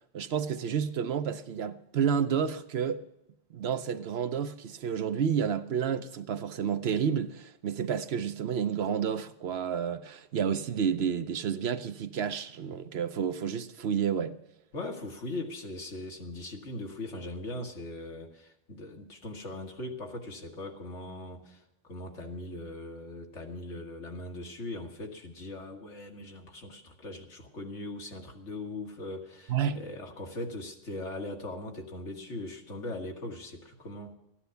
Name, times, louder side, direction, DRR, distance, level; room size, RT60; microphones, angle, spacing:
voice 1, 0.1-3.0 3.5-14.4 29.5-29.8, right 7 dB, 65° right, 0.9 m, -30 dB
voice 2, 14.7-34.2, left 2 dB, 75° left, 2.0 m, -40 dB
14.0 x 10.0 x 6.9 m
omnidirectional pair, 1.2 m